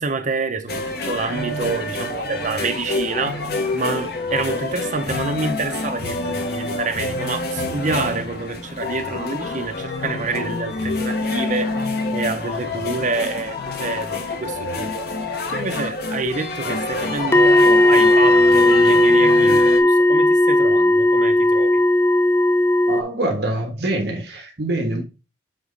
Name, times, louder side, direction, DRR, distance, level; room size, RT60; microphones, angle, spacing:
voice 1, 0.0-15.1 15.5-21.8, right 3 dB, 40° right, 0.8 m, -27 dB
sound 1, 0.7-19.8, left 2 dB, 55° left, 1.1 m, -27 dB
sound 2, 17.3-23.0, left 1 dB, 15° left, 0.3 m, -15 dB
voice 2, 22.9-25.0, right 1 dB, 60° right, 1.4 m, -24 dB
7.8 x 3.1 x 3.9 m
head